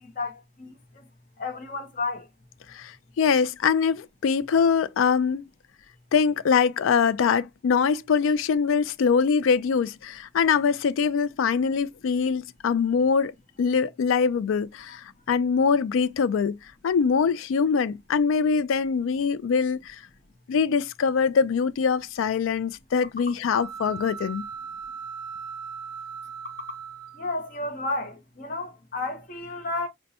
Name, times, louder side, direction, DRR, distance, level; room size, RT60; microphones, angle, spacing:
voice 1, 0.2-0.7 1.4-2.3 27.2-29.9, left 2 dB, 45° left, 0.8 m, -32 dB
voice 2, 2.7-5.4 6.1-13.3 13.6-16.6 16.8-20.0 20.5-24.4, left 6 dB, 85° left, 0.3 m, -23 dB
sound 1, 23.5-27.6, right 6 dB, 20° right, 0.6 m, -38 dB
5.2 x 2.1 x 2.8 m
head